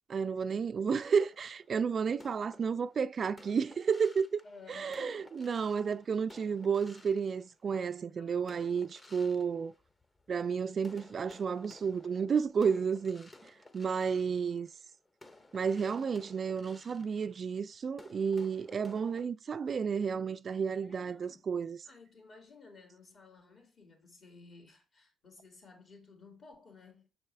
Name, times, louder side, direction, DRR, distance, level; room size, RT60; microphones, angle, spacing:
voice 1, 0.1-4.4 4.7-9.7 10.3-14.7 15.5-21.8, right 6 dB, 45° right, 0.3 m, -32 dB
sound 1, 1.0-7.9 8.4-10.4 10.8-19.3, left 2 dB, 25° left, 0.9 m, -57 dB
voice 2, 4.4-5.3 8.2-8.7 20.8-21.5 21.8-27.1, left 4 dB, 50° left, 2.8 m, -56 dB
6.5 x 4.5 x 3.4 m
cardioid pair, 90°, 0 cm